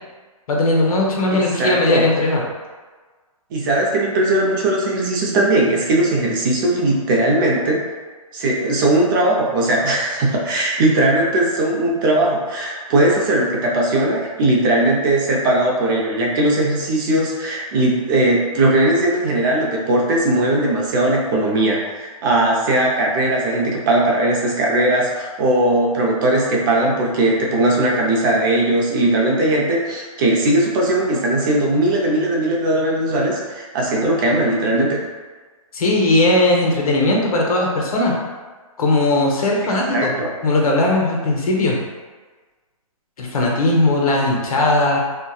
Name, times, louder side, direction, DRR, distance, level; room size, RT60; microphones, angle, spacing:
voice 1, 0.5-2.4 35.7-38.1 38.8-40.1 40.4-41.8 43.2-45.0, left 2 dB, 75° left, -2 dB, 0.7 m, -18 dB
voice 2, 1.3-2.0 3.5-7.8 8.3-35.0 39.9-40.3, right 1 dB, 35° right, -2 dB, 0.5 m, -18 dB
2.6 x 2.2 x 2.3 m, 1.4 s
hypercardioid pair, 140°, 19 cm